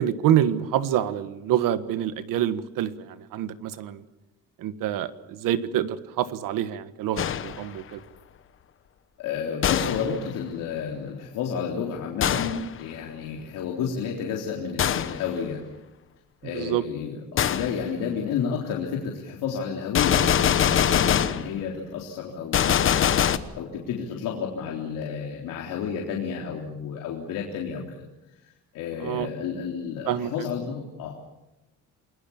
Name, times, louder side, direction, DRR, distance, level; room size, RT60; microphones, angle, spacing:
voice 1, 0.0-4.0 4.6-8.0 16.4-16.8 29.0-29.3 30.0-30.5, right 11 dB, 90° right, 12 dB, 1.6 m, -26 dB
Gunshot gunfire, 7.2-7.7 9.6-10.2 12.2-12.7 14.8-15.2 17.4-17.7 19.9-21.5 22.5-23.4, left 9 dB, 40° left, 1.1 m, -23 dB
voice 2, 9.2-15.6 16.4-28.0 28.4-31.2, left 6 dB, 90° left, -1 dB, 3.8 m, -31 dB
29.0 x 21.5 x 7.2 m, 0.97 s
cardioid pair, 175°, 32 cm